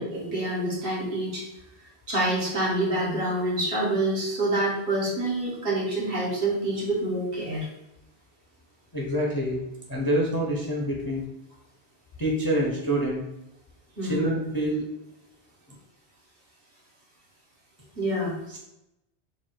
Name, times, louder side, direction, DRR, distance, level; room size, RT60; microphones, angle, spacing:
voice 1, 0.0-1.4 2.1-7.7 14.0-14.3 18.0-18.3, right 1 dB, 65° right, -4 dB, 1.4 m, -27 dB
voice 2, 8.9-9.6 9.9-11.2 12.2-13.2 14.0-14.8 18.5-18.6, equal, 30° left, -4 dB, 0.4 m, -26 dB
3.0 x 2.6 x 4.4 m, 0.87 s
omnidirectional pair, 1.1 m